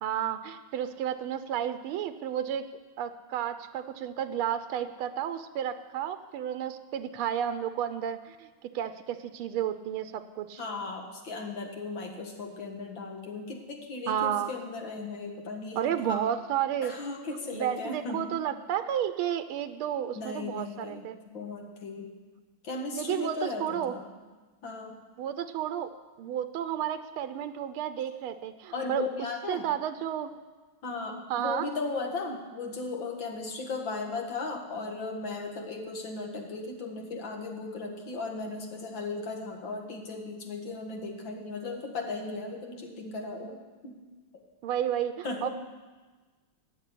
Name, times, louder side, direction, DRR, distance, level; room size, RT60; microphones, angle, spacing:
voice 1, 0.0-2.7 3.0-10.6 14.1-14.5 15.8-16.9 17.5-21.2 22.9-23.9 25.2-25.9 26.2-29.1 29.5-30.3 31.3-31.7 44.6-45.5, right 10 dB, 85° right, 10 dB, 1.6 m, -32 dB
voice 2, 10.6-16.2 16.8-18.3 20.1-22.1 22.6-24.1 24.6-25.0 28.7-29.7 30.8-44.0 45.2-45.5, left 3 dB, 65° left, 1 dB, 2.5 m, -36 dB
15.0 x 7.4 x 9.9 m, 1.3 s
omnidirectional pair, 2.3 m